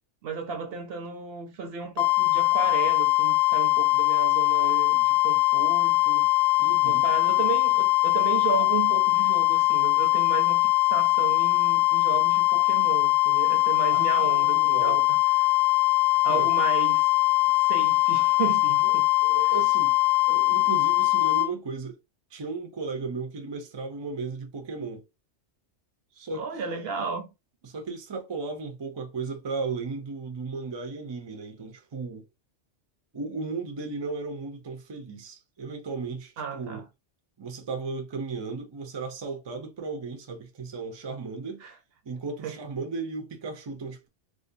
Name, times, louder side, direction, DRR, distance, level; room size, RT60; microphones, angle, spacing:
voice 1, 0.2-6.2 6.8-15.5 16.2-17.1 17.6-19.0 26.4-27.3 36.4-36.8 41.6-41.7 42.4-42.5, right 6 dB, 65° right, 0.7 m, -34 dB
sound 1, 2.0-21.5, left 21 dB, 65° left, 0.9 m, -22 dB
voice 2, 6.6-7.0 13.9-15.0 16.3-16.5 18.8-18.9 19.2-20.0 20.3-22.0 22.3-25.0 26.2-26.8 27.6-32.2 33.1-36.8 37.4-41.6 42.1-44.1, right 4 dB, 45° right, 0.3 m, -35 dB
2.6 x 2.2 x 2.5 m
omnidirectional pair, 1.3 m